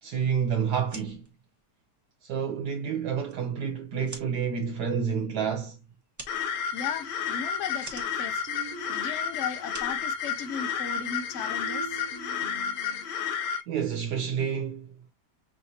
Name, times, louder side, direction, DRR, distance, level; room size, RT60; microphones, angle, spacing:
voice 1, 0.0-1.2 2.2-5.8 13.7-14.9, right 7 dB, 75° right, 1.3 m, -29 dB
sound 1, 0.8-10.9, right 2 dB, 15° right, 0.9 m, -50 dB
sound 2, 6.3-13.6, left 7 dB, 85° left, 1.5 m, -31 dB
voice 2, 6.7-8.5 8.9-12.0, left 6 dB, 65° left, 0.8 m, -36 dB
sound 3, 8.5-9.7 11.0-13.2, right 4 dB, 45° right, 0.8 m, -44 dB
5.5 x 3.2 x 2.7 m
omnidirectional pair, 1.8 m